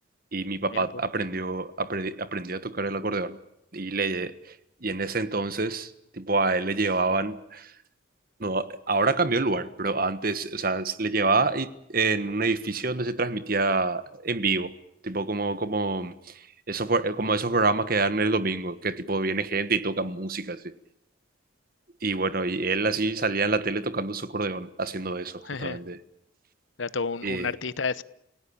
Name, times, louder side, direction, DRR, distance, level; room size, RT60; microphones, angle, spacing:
voice 1, 0.3-3.4 3.7-4.5 4.8-7.7 8.4-14.7 15.0-20.7 22.0-26.0 27.2-27.5, right 3 dB, 45° right, 1.4 m, -27 dB
voice 2, 25.5-25.8 26.8-28.0, left 4 dB, 70° left, 1.0 m, -31 dB
29.0 x 17.5 x 8.7 m
head